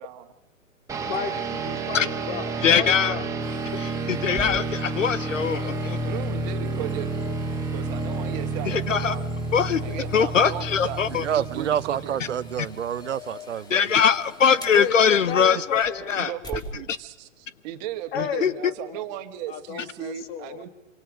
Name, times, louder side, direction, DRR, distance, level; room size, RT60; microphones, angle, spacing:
sound 1, 0.9-13.1, right 3 dB, 10° right, 2.2 m, -30 dB
voice 1, 1.1-3.3 3.7-4.0 14.7-16.2 18.1-19.0 19.5-20.7, left 8 dB, 45° left, 11 dB, 2.2 m, -33 dB
voice 2, 2.6-3.1 4.2-6.0 8.7-9.1 9.5-9.8 10.1-11.2 13.7-16.3 18.1-18.5, left 7 dB, 70° left, 17 dB, 1.2 m, -21 dB
sound 2, 3.4-16.7 17.2-17.3, left 4 dB, 10° left, 4.6 m, -44 dB
voice 3, 6.0-7.4 7.7-9.2 9.7-12.2 16.0-20.7, right 12 dB, 35° right, 8 dB, 1.8 m, -36 dB
voice 4, 11.2-13.9, right 9 dB, 65° right, 17 dB, 0.9 m, -28 dB
26.0 x 25.5 x 5.2 m, 0.91 s
figure-of-eight pair, 125°, 39 cm